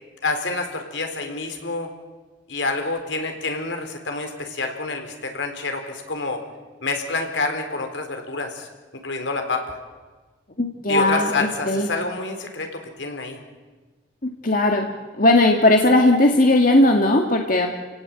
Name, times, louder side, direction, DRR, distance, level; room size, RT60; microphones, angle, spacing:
voice 1, 0.2-1.9 2.5-6.4 6.8-8.7 9.0-9.8 10.9-13.4, left 3 dB, 80° left, 5 dB, 4.1 m, -28 dB
voice 2, 10.6-11.9 14.2-14.9 15.2-17.7, left 1 dB, 50° left, 2 dB, 2.0 m, -17 dB
30.0 x 17.0 x 9.1 m, 1.3 s
head